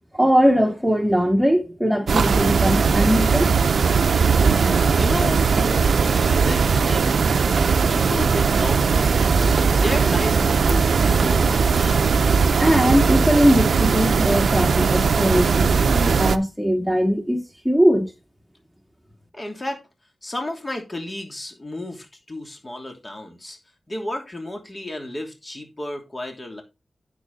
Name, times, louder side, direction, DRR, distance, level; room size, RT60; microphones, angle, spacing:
voice 1, 0.1-3.5 12.6-18.1, equal, ahead, 2.4 m, -20 dB
sound 1, 2.1-16.4, right 5 dB, 80° right, 0.6 m, -19 dB
voice 2, 4.6-7.1 7.9-12.0 19.3-19.8 20.2-23.6 23.9-26.6, left 1 dB, 30° left, 2.9 m, -32 dB
9.4 x 7.0 x 4.0 m
cardioid pair, 60°, 0 cm